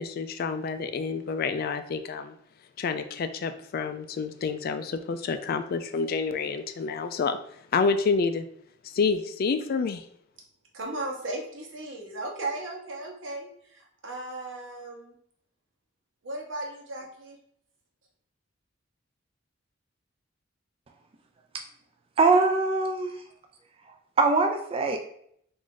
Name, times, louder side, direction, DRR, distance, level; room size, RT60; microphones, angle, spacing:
voice 1, 0.0-2.4 2.8-8.5 8.8-10.0, left 5 dB, 50° left, 10 dB, 0.3 m, -28 dB
voice 2, 10.7-13.5 14.0-15.1 16.2-17.4, right 2 dB, 80° right, 0 dB, 1.0 m, -36 dB
voice 3, 22.2-23.2 24.2-25.0, right 3 dB, 30° right, 4 dB, 0.3 m, -22 dB
3.5 x 2.5 x 3.6 m, 0.67 s
head